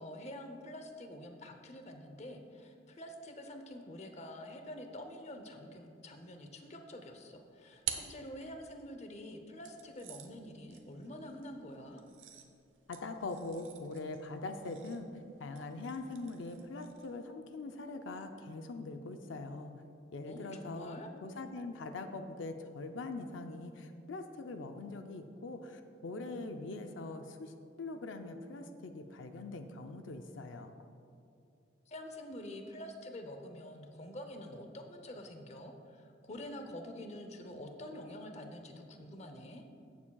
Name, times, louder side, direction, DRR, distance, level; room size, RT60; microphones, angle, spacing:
voice 1, 0.0-12.0 20.3-21.1 31.9-39.6, left 1 dB, 35° left, 5 dB, 0.7 m, -47 dB
sound 1, 7.1-8.9 9.6-17.2, right 9 dB, 90° right, 0.8 m, -48 dB
voice 2, 12.9-15.1 15.4-19.7 20.1-30.7, left 3 dB, 85° left, 7 dB, 0.5 m, -42 dB
15.5 x 7.2 x 2.3 m, 2.6 s
head